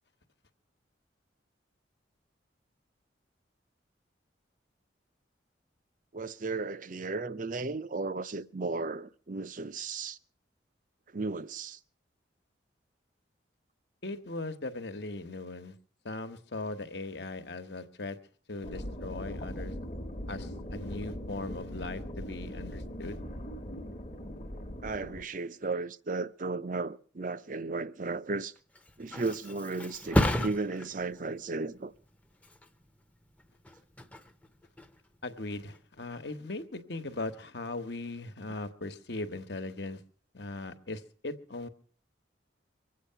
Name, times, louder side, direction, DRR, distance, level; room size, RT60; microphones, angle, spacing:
voice 1, 6.1-10.2 11.1-11.8 24.8-28.5 29.0-31.9, right 3 dB, 45° right, 0.6 m, -35 dB
voice 2, 14.0-15.7 16.0-18.2 18.5-19.7 20.3-23.2 35.2-40.0 40.3-41.7, left 2 dB, 60° left, 1.3 m, -39 dB
sound 1, 18.6-25.2, equal, 35° left, 1.2 m, -40 dB
Thump thud, 28.6-36.0 36.4-36.9, left 1 dB, 5° left, 0.8 m, -35 dB
24.0 x 8.5 x 5.7 m
head